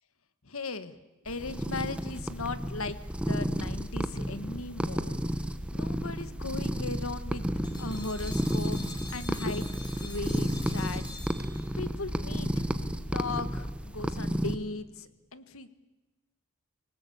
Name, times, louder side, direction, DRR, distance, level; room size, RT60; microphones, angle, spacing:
voice 1, 0.4-1.0 1.2-5.2 5.4-7.4 7.8-9.7 10.0-12.7 13.1-15.7, left 3 dB, 75° left, 12 dB, 1.6 m, -38 dB
sound 1, 1.3-14.6, equal, 5° right, 1.2 m, -32 dB
sound 2, 7.6-11.9, left 2 dB, 20° left, 6.2 m, -46 dB
24.0 x 19.5 x 8.6 m, 1.1 s
head